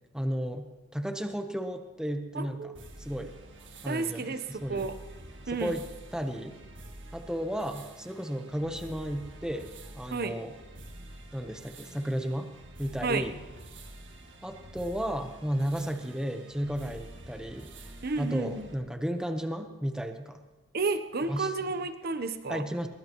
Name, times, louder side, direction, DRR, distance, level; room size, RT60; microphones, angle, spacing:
voice 1, 0.1-2.7 3.0-3.3 3.8-4.9 5.6-5.8 6.1-6.6 7.1-9.7 9.9-10.5 11.3-12.5 12.8-13.4 14.4-17.7 18.2-20.4 21.3-21.5 22.5-22.9, equal, 5° right, 6 dB, 1.0 m, -33 dB
voice 2, 2.3-2.8 3.8-5.0 5.5-5.8 10.1-10.4 13.0-13.3 18.0-18.7 20.7-22.7, right 3 dB, 55° right, 10 dB, 0.9 m, -32 dB
sound 1, 2.7-18.7, right 1 dB, 70° right, 1.9 m, -48 dB
22.0 x 20.0 x 3.1 m, 1.2 s
head